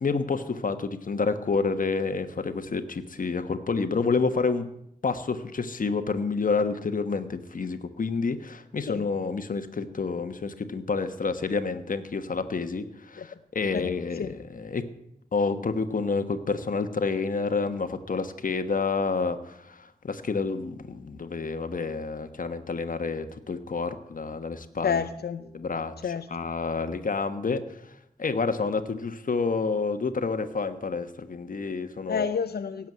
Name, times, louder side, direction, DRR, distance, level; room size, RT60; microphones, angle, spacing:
voice 1, 0.0-4.7 5.0-14.8 15.3-25.0 25.5-25.9 26.3-27.6 28.2-32.3, left 4 dB, 60° left, 1.3 m, -29 dB
voice 2, 24.8-25.4 26.0-26.3 32.1-32.9, left 6 dB, 90° left, 0.6 m, -29 dB
17.0 x 7.4 x 9.6 m
wide cardioid pair, 115°, 16 cm